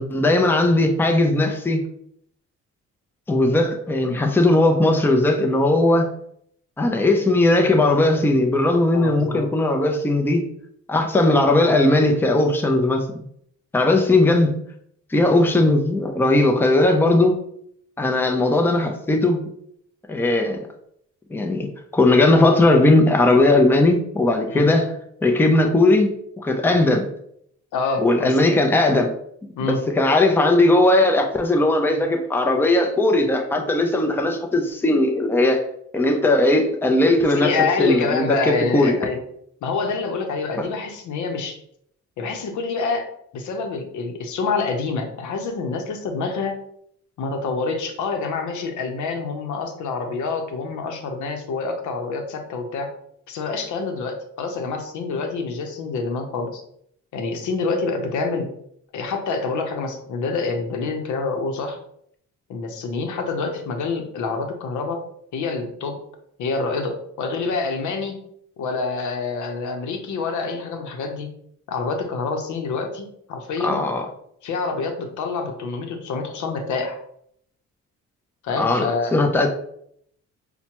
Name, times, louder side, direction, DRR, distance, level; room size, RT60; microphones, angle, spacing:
voice 1, 0.0-1.8 3.3-6.1 6.8-10.4 10.9-13.2 13.7-14.6 15.1-17.4 18.0-19.4 20.1-20.6 21.3-24.9 25.2-27.1 28.0-29.1 29.6-35.6 35.9-37.5 37.8-38.9 40.6-40.7 73.6-74.1 78.6-78.9 79.1-79.5, left 2 dB, 5° left, 3 dB, 0.5 m, -18 dB
voice 2, 8.9-9.5 24.5-24.7 27.7-28.5 29.6-29.8 37.3-39.2 39.6-41.6 42.2-43.1 43.3-46.6 47.2-52.9 53.3-56.6 57.1-58.5 58.9-61.8 62.5-65.0 65.3-66.0 66.4-68.2 68.6-71.3 71.7-73.8 74.4-77.0 78.4-79.2, left 4 dB, 75° left, 4 dB, 0.8 m, -27 dB
5.5 x 2.2 x 2.9 m, 0.69 s
cardioid pair, 90°, 30 cm